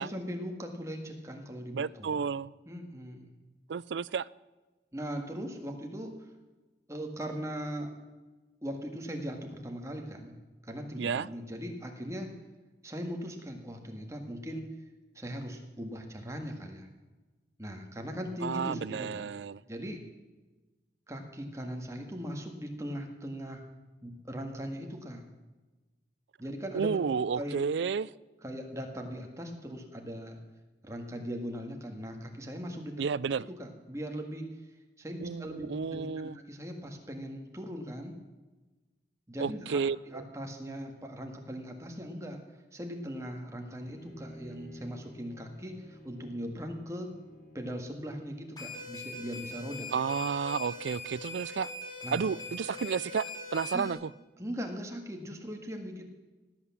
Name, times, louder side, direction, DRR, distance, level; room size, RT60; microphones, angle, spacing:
voice 1, 0.0-2.3 2.7-3.3 4.9-6.3 6.9-7.9 8.6-10.4 10.6-12.4 12.8-14.7 15.2-16.9 17.6-19.3 19.7-20.0 21.1-23.6 24.0-25.3 26.4-27.1 27.4-27.5 28.4-30.4 30.8-33.1 33.5-34.5 35.0-38.2 39.3-39.8 40.1-42.4 42.7-47.1 47.5-49.9 52.0-52.2 53.7-53.9 54.4-56.0, equal, 15° right, 3 dB, 1.9 m, -39 dB
voice 2, 1.7-2.5 3.7-4.3 11.0-11.3 18.4-19.6 26.7-28.1 33.0-33.5 35.2-36.4 39.4-40.2 49.9-51.7 52.1-54.1, right 6 dB, 90° right, 21 dB, 0.4 m, -31 dB
Bowed string instrument, 43.8-48.5, equal, 45° left, 4.8 m, -52 dB
sound 1, 48.6-53.9, left 2 dB, 25° left, 3.6 m, -42 dB
18.0 x 8.7 x 7.3 m, 1.2 s
head